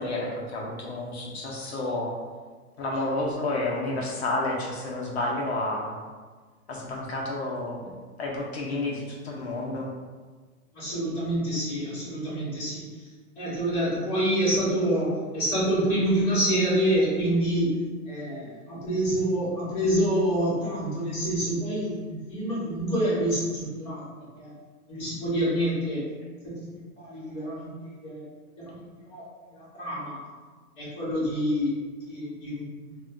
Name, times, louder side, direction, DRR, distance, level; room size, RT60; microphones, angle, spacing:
voice 1, 0.0-2.1 2.8-5.9 6.7-7.9 8.2-9.9, left 2 dB, 45° left, -2 dB, 0.4 m, -30 dB
voice 2, 10.7-13.1 13.4-17.8 18.1-24.5 24.9-26.0 26.4-26.7 27.0-28.2 28.7-29.2 29.5-30.2 30.8-31.7 32.1-32.6, right 1 dB, 10° left, -12 dB, 1.0 m, -27 dB
2.3 x 2.1 x 3.5 m, 1.4 s
hypercardioid pair, 165°, 46 cm